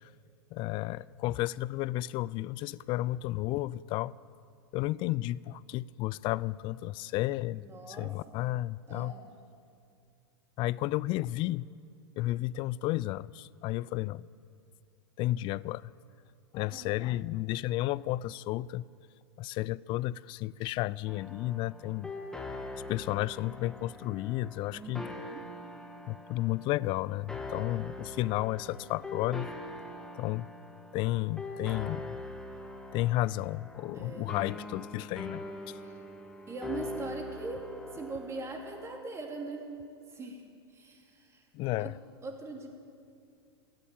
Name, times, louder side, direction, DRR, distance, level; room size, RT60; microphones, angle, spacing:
voice 1, 0.5-4.1 4.7-9.1 10.6-11.7 12.2-14.3 15.2-15.9 16.5-18.9 19.4-22.1 22.9-25.0 26.1-29.5 30.2-30.5 30.9-32.2 32.9-35.4 41.5-41.9, left 16 dB, 40° left, 0.3 m, -32 dB
voice 2, 7.5-8.1 8.9-9.2 16.7-17.0 24.7-25.5 33.9-34.4 35.8-36.0 36.5-37.6 37.9-39.6 40.1-40.4 40.7-41.5 41.8-41.9 42.2-42.7, right 3 dB, 20° right, 2.8 m, -41 dB
sound 1, 21.0-39.0, left 2 dB, 5° left, 1.6 m, -43 dB
15.0 x 10.5 x 9.2 m
hypercardioid pair, 105°, 13 cm